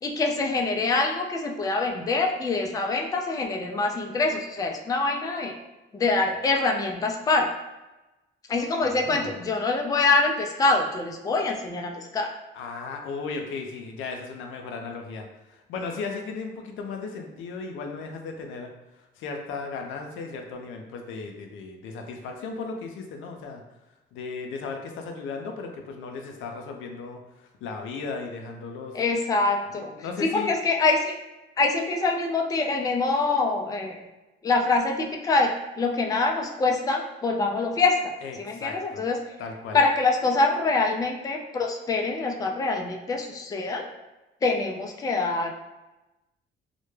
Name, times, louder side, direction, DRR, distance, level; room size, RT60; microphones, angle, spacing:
voice 1, 0.0-5.5 5.9-7.5 8.5-12.3 28.9-29.9 30.2-31.1 31.6-34.0 34.4-38.1 38.4-39.2 39.7-43.9 44.4-45.5, left 3 dB, 20° left, 2 dB, 0.3 m, -25 dB
voice 2, 8.8-9.4 12.5-18.7 19.2-23.6 24.1-29.0 29.7-30.5 38.2-39.0 39.4-39.8, left 4 dB, 85° left, 3 dB, 0.4 m, -36 dB
2.1 x 2.1 x 3.1 m, 1.0 s
cardioid pair, 90°, 20 cm